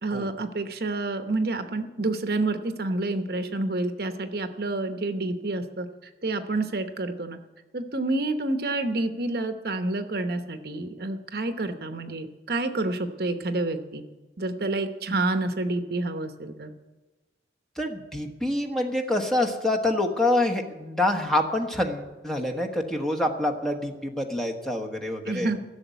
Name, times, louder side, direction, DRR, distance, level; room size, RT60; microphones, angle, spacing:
voice 1, 0.0-5.9 6.2-7.4 7.7-14.0 14.4-16.7 25.3-25.6, right 2 dB, 55° right, 8 dB, 0.9 m, -28 dB
voice 2, 17.8-25.5, left 1 dB, ahead, 1 dB, 1.2 m, -26 dB
15.0 x 7.0 x 9.3 m, 1.2 s
head